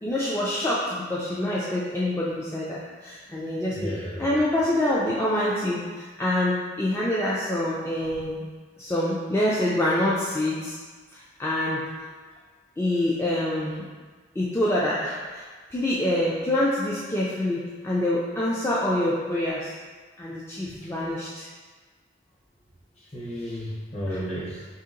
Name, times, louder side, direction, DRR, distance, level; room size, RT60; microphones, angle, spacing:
voice 1, 0.0-8.4 8.8-10.8 11.1-11.8 12.8-13.9 14.4-15.4 15.7-19.7 20.2-21.5 24.1-24.2, left 1 dB, 15° left, -7 dB, 0.3 m, -26 dB
voice 2, 3.7-4.4 20.6-20.9 23.0-24.7, equal, 35° left, -5 dB, 0.8 m, -33 dB
3.5 x 2.8 x 3.7 m, 1.5 s
head